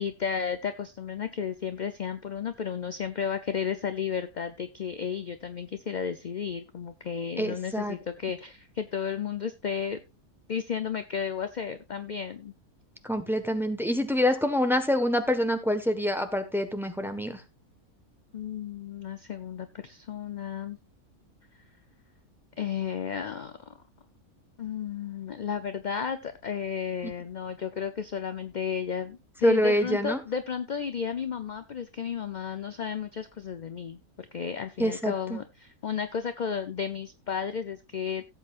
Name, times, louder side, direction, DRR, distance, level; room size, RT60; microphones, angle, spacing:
voice 1, 0.0-10.0 10.5-12.5 18.3-20.8 22.6-23.8 24.6-38.3, left 7 dB, 45° left, 10 dB, 0.6 m, -33 dB
voice 2, 7.4-8.0 13.1-17.4 27.0-27.1 29.4-30.2 34.8-35.4, equal, ahead, 8 dB, 1.2 m, -26 dB
17.0 x 8.2 x 2.5 m, 0.23 s
omnidirectional pair, 1.5 m